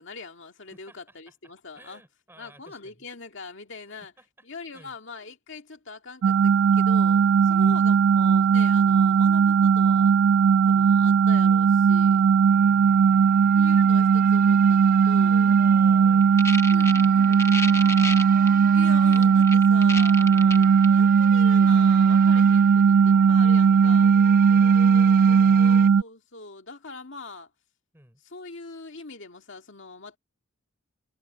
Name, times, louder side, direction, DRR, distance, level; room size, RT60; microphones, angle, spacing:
voice 1, 0.0-2.0 2.4-4.1 4.4-10.1 10.6-12.3 13.5-15.5 16.6-17.5 18.7-24.1 25.6-27.5 28.2-30.2, left 3 dB, 60° left, 2.3 m, -42 dB
voice 2, 0.7-1.2 1.7-3.1 4.2-4.3 4.7-5.0 7.5-7.9 8.9-9.0 10.7-11.2 12.4-13.6 15.5-18.3 19.1-19.3 24.5-25.9 27.9-28.2, right 1 dB, 10° right, 4.2 m, -53 dB
sound 1, 6.2-26.0, right 6 dB, 65° right, 0.3 m, -18 dB
sound 2, 12.5-25.9, right 5 dB, 40° right, 0.9 m, -43 dB
sound 3, 16.2-18.5 19.1-20.9, left 3 dB, 15° left, 0.8 m, -31 dB
head